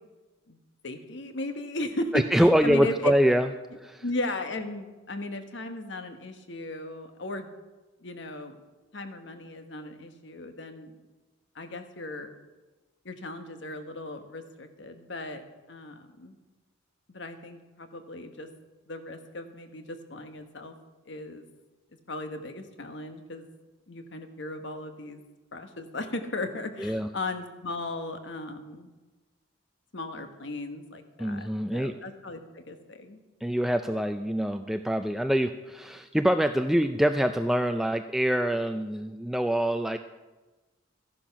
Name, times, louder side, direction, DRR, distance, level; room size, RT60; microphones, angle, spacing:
voice 1, 0.8-3.1 4.0-7.5 8.0-8.6 8.9-10.9 11.5-12.3 13.0-16.4 17.1-18.5 18.9-20.8 21.1-21.5 22.1-23.5 23.9-25.2 25.5-28.9 29.9-33.2, left 2 dB, 60° left, 7 dB, 1.2 m, -36 dB
voice 2, 2.1-3.5 3.8-4.0 26.8-27.1 31.2-31.9 33.4-40.0, equal, ahead, 7 dB, 0.3 m, -25 dB
13.5 x 10.5 x 5.8 m, 1.2 s
head